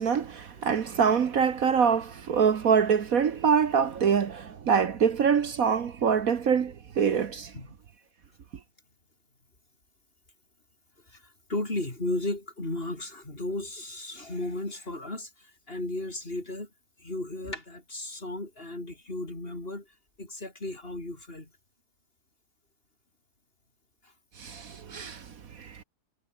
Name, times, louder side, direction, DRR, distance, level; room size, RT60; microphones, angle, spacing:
voice 1, 0.0-7.5 24.4-25.3 25.5-25.8, right 7 dB, 60° right, 1.6 m, -25 dB
voice 2, 11.1-16.7 17.0-19.9 20.2-21.5 24.0-24.1, left 2 dB, 35° left, 4.7 m, -35 dB
omnidirectional pair, 1.7 m